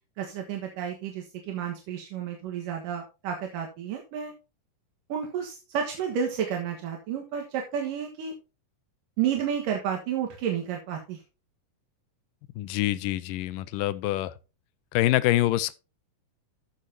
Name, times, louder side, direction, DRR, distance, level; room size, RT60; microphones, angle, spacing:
voice 1, 0.2-4.3 5.1-8.3 9.2-11.2, right 8 dB, 85° right, 3.1 m, -31 dB
voice 2, 12.6-14.3 14.9-15.8, left 15 dB, 90° left, 2.3 m, -25 dB
14.0 x 6.7 x 2.8 m
omnidirectional pair, 3.7 m